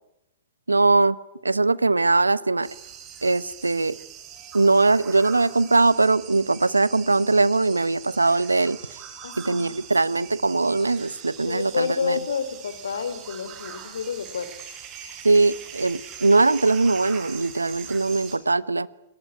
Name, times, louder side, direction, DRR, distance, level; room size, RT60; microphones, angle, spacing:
voice 1, 0.7-1.2 1.4-2.7 3.2-4.0 4.5-8.8 9.4-12.2 15.2-18.9, right 3 dB, 85° right, 19 dB, 1.0 m, -21 dB
sound 1, 2.6-18.4, right 9 dB, 35° right, 8.0 m, -42 dB
voice 2, 9.2-9.8 11.4-14.5, left 6 dB, 70° left, 13 dB, 3.4 m, -29 dB
28.5 x 20.0 x 9.5 m, 0.87 s
figure-of-eight pair, 105°, 0 cm